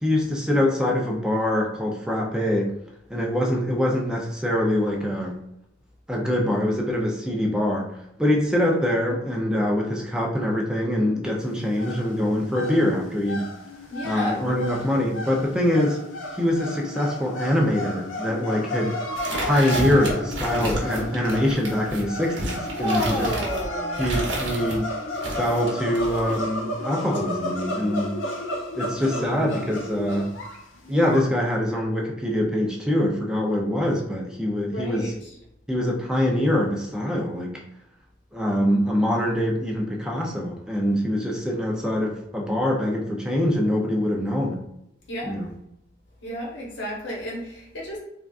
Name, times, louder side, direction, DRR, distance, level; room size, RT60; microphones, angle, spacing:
voice 1, 0.0-2.7 3.1-5.4 6.1-7.9 8.2-13.5 14.0-16.0 16.3-19.0 19.4-23.2 24.0-24.9 25.4-28.2 28.7-30.3 30.9-35.1 35.7-37.6 38.3-44.6 45.2-45.5, left 1 dB, 5° right, -2 dB, 0.4 m, -24 dB
sound 1, 11.4-31.2, left 1 dB, 85° left, 0.5 m, -33 dB
voice 2, 13.9-14.6 22.6-24.1 29.1-30.0 34.7-35.4 45.1-45.4 46.2-48.0, left 1 dB, 65° left, -5 dB, 1.0 m, -32 dB
sound 2, 19.2-24.8 25.2-26.4, right 1 dB, 75° right, 0.9 m, -31 dB
3.6 x 2.3 x 2.3 m, 0.81 s
head